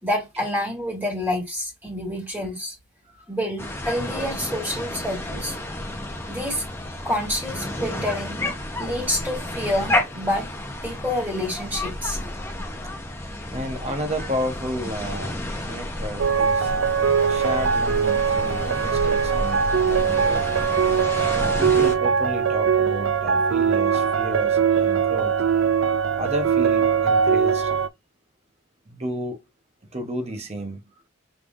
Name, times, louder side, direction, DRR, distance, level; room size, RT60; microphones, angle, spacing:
voice 1, 0.0-2.8 3.3-5.5 6.3-6.6 7.0-8.4 8.8-10.5 10.8-12.2, left 1 dB, 10° right, 1.9 m, -28 dB
sound 1, 3.6-21.9, left 1 dB, 10° left, 0.9 m, -31 dB
voice 2, 13.5-16.7 17.3-20.6 21.3-25.3 26.2-27.7 28.9-29.4 29.9-30.8, equal, 30° right, 0.9 m, -32 dB
sound 2, 16.2-27.9, right 6 dB, 70° right, 0.4 m, -21 dB
5.3 x 3.4 x 2.6 m
head